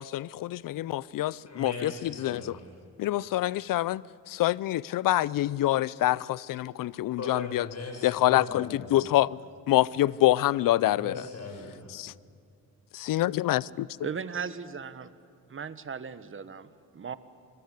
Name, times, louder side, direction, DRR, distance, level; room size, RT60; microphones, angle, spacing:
voice 1, 0.0-2.6 3.0-7.7 8.0-9.4 9.7-11.2 11.9-12.1 12.9-13.9, left 15 dB, 70° left, 0.6 m, -26 dB
voice 2, 1.5-2.7 7.2-8.9 10.9-11.9, left 3 dB, 45° left, 6.5 m, -39 dB
voice 3, 14.0-15.1 15.5-17.2, right 6 dB, 35° right, 1.4 m, -37 dB
25.0 x 22.5 x 8.3 m
cardioid pair, 85°, 34 cm